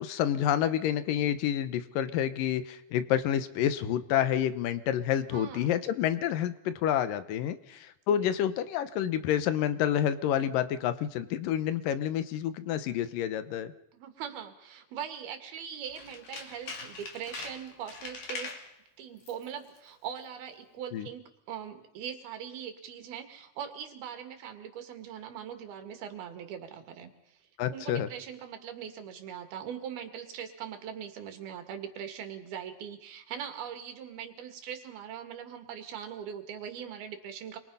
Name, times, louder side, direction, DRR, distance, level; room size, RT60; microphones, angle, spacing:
voice 1, 0.0-13.7 20.9-21.1 27.6-28.1, left 10 dB, 70° left, 12 dB, 2.5 m, -29 dB
voice 2, 5.3-5.7 8.2-8.3 13.9-18.6 19.0-27.4 27.7-37.6, right 8 dB, 80° right, 6 dB, 4.0 m, -41 dB
Tools, 15.9-18.7 19.2-19.5 19.8-19.9, left 4 dB, 55° left, 4.4 m, -42 dB
27.0 x 23.0 x 5.6 m, 0.86 s
omnidirectional pair, 4.3 m